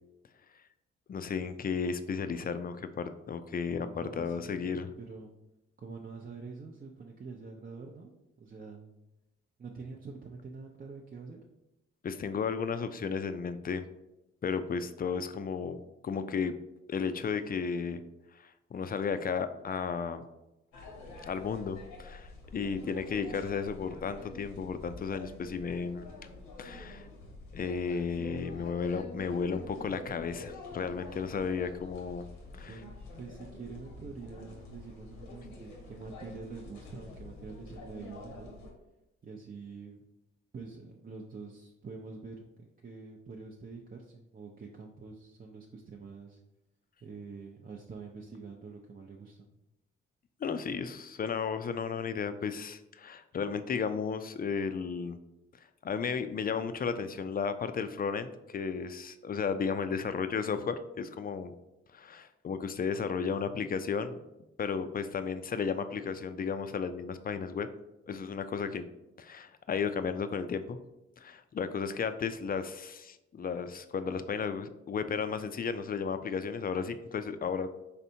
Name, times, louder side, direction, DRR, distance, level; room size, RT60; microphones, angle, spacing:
voice 1, 1.1-4.9 12.0-13.8 14.4-16.6 16.9-18.0 18.3-20.2 21.3-26.1 26.6-27.1 27.5-32.3 32.5-32.8 50.4-55.2 55.8-61.5 61.9-64.2 64.6-67.7 68.1-68.9 69.2-70.8 71.2-77.7, left 6 dB, 30° left, 10 dB, 0.4 m, -34 dB
voice 2, 3.6-5.3 5.8-8.1 8.4-8.9 9.6-11.4 32.6-38.5 39.2-40.0 40.5-46.4 47.0-49.5, right 4 dB, 30° right, 0 dB, 0.6 m, -46 dB
sound 1, 20.7-38.7, left 2 dB, 85° left, 0.9 m, -47 dB
4.2 x 3.3 x 2.7 m, 0.94 s
hypercardioid pair, 45°, 29 cm